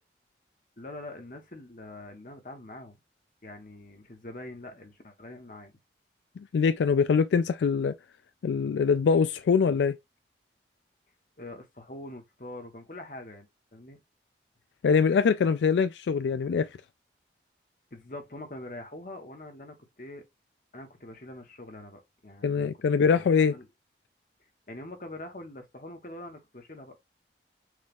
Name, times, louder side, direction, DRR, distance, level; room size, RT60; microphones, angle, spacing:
voice 1, 0.8-3.0 3.4-5.7 11.4-13.5 13.7-14.0 17.9-20.2 20.7-22.7 23.0-23.7 24.7-27.0, left 1 dB, 45° left, 1.2 m, -44 dB
voice 2, 6.4-7.9 8.4-10.0 14.8-16.7 22.4-23.6, left 5 dB, 85° left, 0.3 m, -23 dB
6.4 x 2.4 x 3.5 m
head